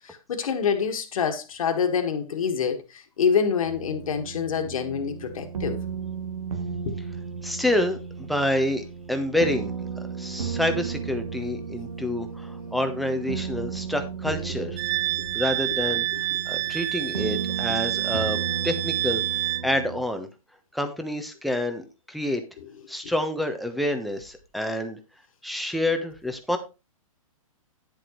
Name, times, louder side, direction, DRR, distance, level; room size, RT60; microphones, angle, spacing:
voice 1, 0.0-5.8 6.9-7.0, left 6 dB, 70° left, 1.8 m, -26 dB
sound 1, 3.6-20.0, right 6 dB, 85° right, 1.5 m, -34 dB
voice 2, 7.4-9.7 10.1-14.8 15.3-20.3 20.7-22.4 22.9-25.0 25.4-26.6, left 1 dB, ahead, 1.1 m, -28 dB
Wind instrument woodwind instrument, 14.8-19.7, right 17 dB, 35° right, 0.4 m, -28 dB
10.0 x 7.6 x 3.1 m
hypercardioid pair, 130°, 18 cm